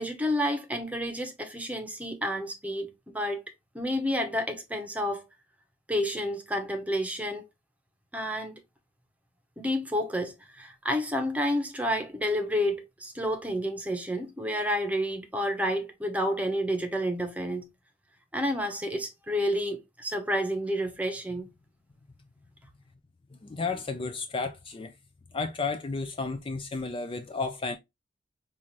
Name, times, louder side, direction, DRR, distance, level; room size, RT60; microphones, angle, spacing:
voice 1, 0.0-3.4 3.7-5.3 5.9-7.4 8.1-8.6 9.6-17.7 18.3-21.5, equal, 10° right, 0.8 m, -30 dB
voice 2, 23.3-24.9 25.3-27.8, left 4 dB, 30° left, 0.4 m, -32 dB
5.3 x 2.5 x 3.0 m
head